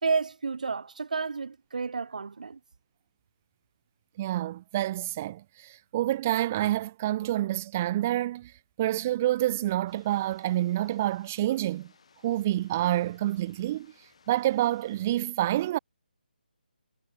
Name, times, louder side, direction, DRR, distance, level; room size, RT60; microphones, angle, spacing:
voice 1, 0.0-2.6, right 4 dB, 50° right, 2.3 m, -30 dB
voice 2, 4.2-8.5 8.8-11.9 12.2-13.9 14.3-15.8, right 14 dB, 10° right, 0.3 m, -28 dB
sound 1, 9.9-15.3, left 6 dB, 40° left, 7.4 m, -61 dB
hypercardioid pair, 175°, 5 cm